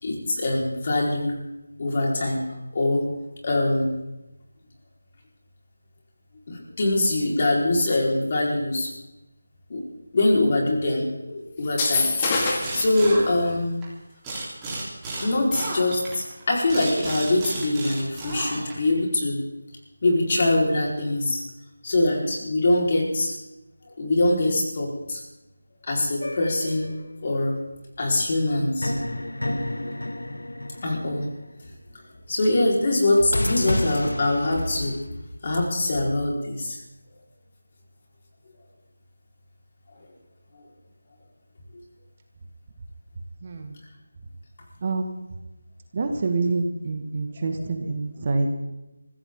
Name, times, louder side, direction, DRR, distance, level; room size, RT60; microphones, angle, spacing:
voice 1, 0.0-1.4 1.8-3.1 3.4-3.9 6.5-8.9 9.7-9.8 10.1-12.1 12.7-13.8 15.2-19.4 20.0-21.4 21.8-23.3 24.0-25.2 25.8-26.9 27.2-27.6 28.0-28.9 30.8-31.3 32.3-35.0 35.4-36.8 47.3-47.4 47.7-47.8, left 2 dB, 40° left, -1 dB, 4.5 m, -23 dB
sound 1, 11.6-12.8, left 3 dB, 25° left, 2.3 m, -24 dB
sound 2, 12.3-13.9 14.2-18.9, right 2 dB, 10° right, 3.7 m, -33 dB
intros outros and effects., 26.2-27.3 28.8-31.5 33.3-35.0, left 1 dB, 90° left, 1.7 m, -30 dB
voice 2, 43.4-43.8 44.8-45.3 45.9-48.5, right 3 dB, 35° right, 5 dB, 1.7 m, -27 dB
22.5 x 15.0 x 3.8 m, 0.97 s
figure-of-eight pair, 165°, 0 cm